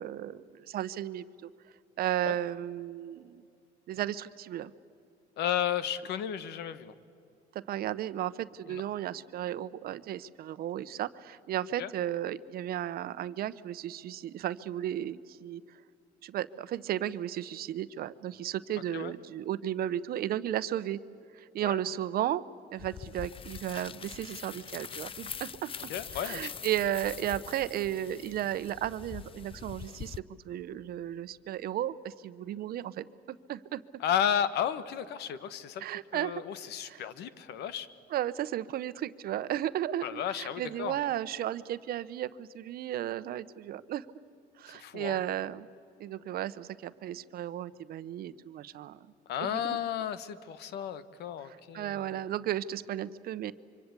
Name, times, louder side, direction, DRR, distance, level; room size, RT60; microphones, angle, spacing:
voice 1, 0.0-1.5 2.0-3.4 3.9-4.7 7.5-15.6 16.2-21.0 21.3-22.4 22.7-25.7 26.1-30.2 30.4-33.8 35.8-36.4 36.8-37.0 38.1-44.1 44.6-45.7 46.0-49.0 49.4-49.8 51.4-53.5, right 12 dB, 65° right, 15 dB, 0.9 m, -34 dB
voice 2, 5.4-6.9 8.7-8.8 11.8-11.9 18.9-19.1 21.6-21.8 25.9-26.5 34.0-35.8 36.1-37.9 40.0-40.9 44.7-45.2 49.3-52.2, left 9 dB, 80° left, 14 dB, 1.3 m, -33 dB
sound 1, 22.8-30.2, left 7 dB, 30° left, 0.6 m, -43 dB
26.0 x 24.5 x 8.3 m, 2.5 s
cardioid pair, 110°, 17 cm